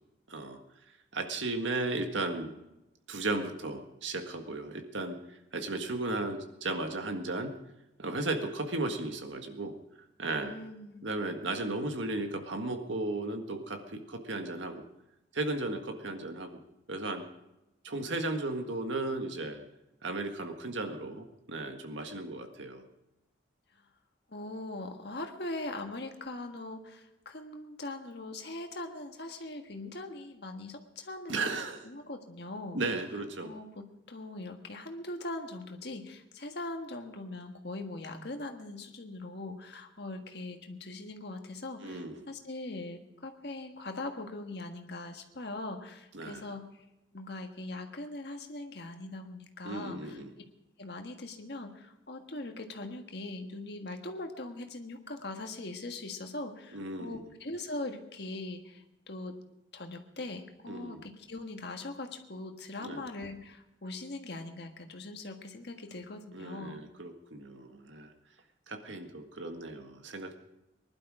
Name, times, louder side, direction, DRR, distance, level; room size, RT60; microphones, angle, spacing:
voice 1, 0.3-0.6 1.1-2.5 3.1-5.2 5.5-7.5 8.0-9.7 10.2-10.5 11.0-14.8 15.3-16.5 16.9-17.2 17.8-19.6 20.0-22.8 31.3-31.8 32.7-33.5 41.8-42.2 46.1-46.5 49.6-50.3 56.7-57.2 60.7-61.0 62.8-63.0 66.3-68.1 68.7-70.3, right 2 dB, 80° right, 5 dB, 1.7 m, -35 dB
voice 2, 10.4-11.1 24.3-31.5 31.8-32.8 33.4-46.7 47.1-50.2 50.8-59.3 59.7-66.8, left 2 dB, 60° left, 4 dB, 1.6 m, -41 dB
20.0 x 11.5 x 4.9 m, 0.92 s
head